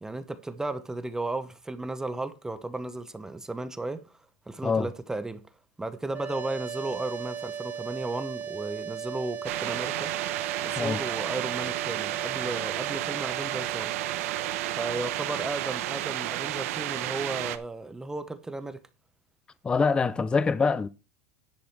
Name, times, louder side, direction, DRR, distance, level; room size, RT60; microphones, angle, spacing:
voice 1, 0.0-4.1 4.5-5.4 5.8-10.3 10.6-13.9 14.7-18.8, right 2 dB, 5° right, 0.7 m, -34 dB
sound 1, 6.1-17.2, right 8 dB, 25° right, 1.2 m, -38 dB
sound 2, 9.4-17.6, right 15 dB, 75° right, 0.9 m, -32 dB
voice 2, 19.6-20.9, left 4 dB, 10° left, 0.4 m, -24 dB
10.5 x 4.9 x 6.0 m
supercardioid pair, 140°, 8 cm